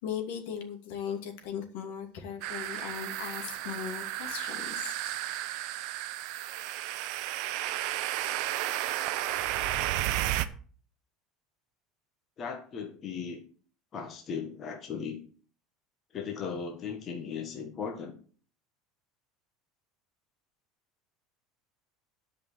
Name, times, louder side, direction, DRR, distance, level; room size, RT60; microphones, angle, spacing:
voice 1, 0.0-5.1, left 8 dB, 75° left, 2.5 m, -38 dB
sound 1, 2.4-10.5, right 14 dB, 55° right, 0.8 m, -33 dB
voice 2, 12.4-13.4 13.9-15.2 16.1-18.1, left 6 dB, 25° left, 1.6 m, -37 dB
11.0 x 5.5 x 6.8 m
cardioid pair, 175°, 0 cm